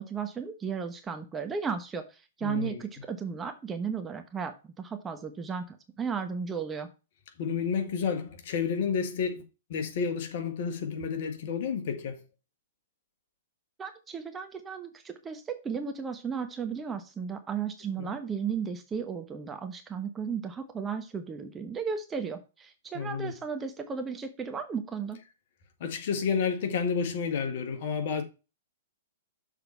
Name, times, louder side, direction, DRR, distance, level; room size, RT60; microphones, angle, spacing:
voice 1, 0.0-6.9 13.8-25.2, right 6 dB, 15° right, 1.0 m, -35 dB
voice 2, 2.4-2.8 7.4-9.4 9.7-12.2 18.0-18.1 22.9-23.3 25.8-28.2, left 6 dB, 50° left, 1.6 m, -30 dB
6.8 x 4.0 x 5.4 m
figure-of-eight pair, 110°, 0 cm